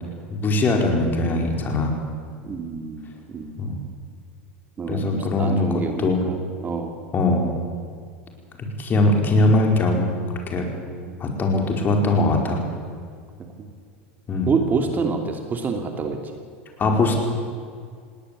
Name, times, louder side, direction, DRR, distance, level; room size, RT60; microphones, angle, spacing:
voice 1, 0.3-1.9 3.6-3.8 4.9-6.2 7.1-7.5 8.6-10.1 10.5-10.7 11.2-12.6 14.3-14.5 16.8-17.2, left 2 dB, 30° left, 2 dB, 5.0 m, -21 dB
voice 2, 2.4-3.5 4.8-6.4 6.6-6.9 10.9-11.2 13.6-13.7 14.5-16.2, right 4 dB, 25° right, 4 dB, 2.8 m, -27 dB
20.0 x 18.0 x 8.6 m, 2.1 s
hypercardioid pair, 100°, 6 cm